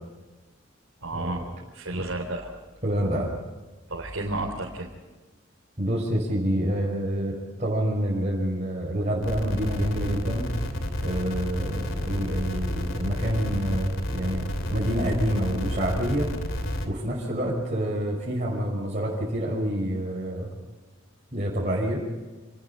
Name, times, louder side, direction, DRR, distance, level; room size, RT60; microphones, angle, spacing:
voice 1, 1.0-1.4 1.7-2.5 3.9-4.9, right 2 dB, 90° right, -3 dB, 4.0 m, -31 dB
voice 2, 2.8-3.3 5.8-10.5 11.0-16.3 16.8-20.5 21.3-22.0, equal, 35° right, -5 dB, 5.8 m, -27 dB
sound 1, 9.2-16.9, left 1 dB, 75° left, 3.0 m, -30 dB
29.5 x 20.5 x 4.5 m, 1.2 s
head